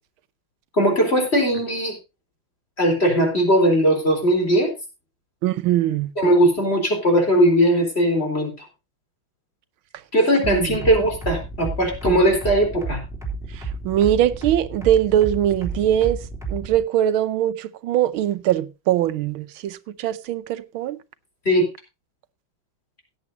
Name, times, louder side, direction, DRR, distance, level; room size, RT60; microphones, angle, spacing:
voice 1, 0.7-2.0 2.8-4.7 6.2-8.5 10.1-13.0 21.5-21.7, equal, 30° left, 4.2 m, -19 dB
voice 2, 5.4-6.1 10.5-10.6 13.6-16.2 16.5-21.0, right 11 dB, 85° right, 1.6 m, -21 dB
sound 1, 10.4-16.8, right 4 dB, ahead, 3.3 m, -31 dB
17.0 x 9.1 x 2.8 m
omnidirectional pair, 2.2 m